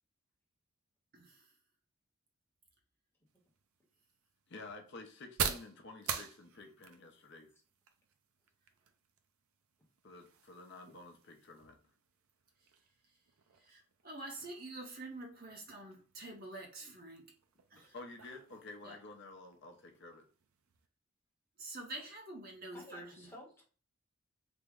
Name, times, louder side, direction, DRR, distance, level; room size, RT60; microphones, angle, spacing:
voice 1, 1.1-1.5 13.6-17.3 17.7-18.0 18.8-19.0 21.6-23.3, right 2 dB, 45° right, 2 dB, 0.7 m, -47 dB
sound 1, 3.3-20.9, right 7 dB, 80° right, 0.5 m, -47 dB
voice 2, 4.5-7.5 10.0-11.8 17.9-20.2, left 3 dB, 55° left, 2 dB, 0.6 m, -51 dB
voice 3, 22.7-23.6, left 1 dB, 10° left, -2 dB, 0.8 m, -53 dB
3.4 x 2.1 x 3.5 m, 0.39 s
head